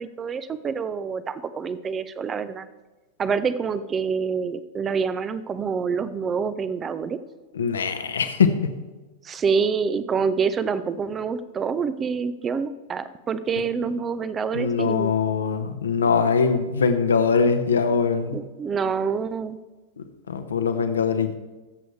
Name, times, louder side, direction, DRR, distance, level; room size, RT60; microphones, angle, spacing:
voice 1, 0.0-2.7 3.2-7.2 9.2-15.1 18.3-19.6, right 5 dB, 20° right, 14 dB, 0.7 m, -26 dB
voice 2, 7.5-8.7 14.5-18.4 20.0-21.3, left 5 dB, 70° left, 8 dB, 1.2 m, -22 dB
22.5 x 7.8 x 3.4 m, 1.2 s
figure-of-eight pair, 90°, 0 cm